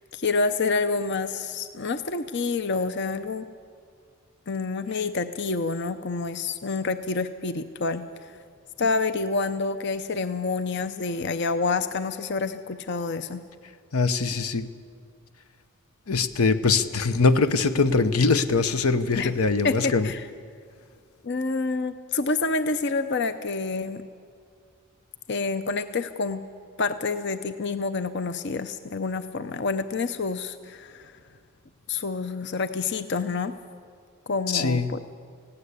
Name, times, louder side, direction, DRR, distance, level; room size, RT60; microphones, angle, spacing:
voice 1, 0.1-3.5 4.5-8.4 8.8-13.4 19.2-19.3 19.6-20.2 21.2-24.0 25.3-26.4 26.8-31.1 31.9-33.5 34.3-35.0, left 4 dB, 50° left, 11 dB, 0.6 m, -28 dB
voice 2, 13.9-14.7 16.1-20.1 34.5-34.9, left 4 dB, 80° left, 12 dB, 0.9 m, -22 dB
19.5 x 16.0 x 8.3 m, 2.2 s
head